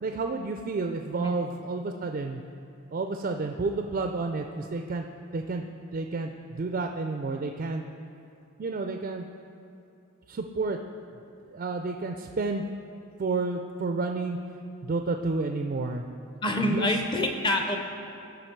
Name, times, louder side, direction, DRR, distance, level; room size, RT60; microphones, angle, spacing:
voice 1, 0.0-2.4 2.9-5.1 5.3-5.6 5.9-7.8 8.6-9.3 10.3-10.8 11.5-12.6 13.2-14.4 14.8-16.0 16.6-16.9, right 3 dB, 40° right, 5 dB, 0.3 m, -30 dB
voice 2, 16.4-17.8, left 1 dB, 20° left, 4 dB, 0.6 m, -26 dB
13.5 x 5.2 x 4.5 m, 2.7 s
head